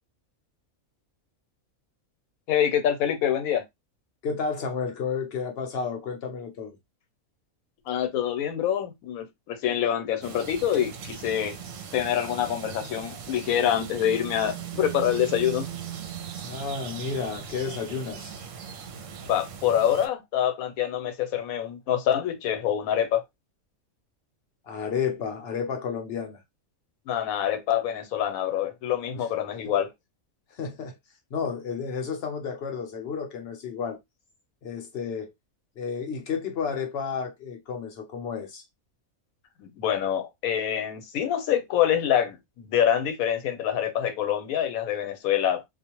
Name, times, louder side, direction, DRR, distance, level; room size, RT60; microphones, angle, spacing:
voice 1, 2.5-3.6 7.9-11.6 11.9-15.7 19.3-23.2 27.1-29.9 39.6-45.7, left 10 dB, 80° left, 1.1 m, -26 dB
voice 2, 4.2-6.8 16.4-18.4 24.7-26.4 30.6-31.0 31.3-34.0 34.6-35.3 35.8-38.6, left 6 dB, 55° left, 0.8 m, -31 dB
sound 1, 10.2-20.1, right 8 dB, 70° right, 0.9 m, -39 dB
2.5 x 2.0 x 2.9 m
omnidirectional pair, 1.5 m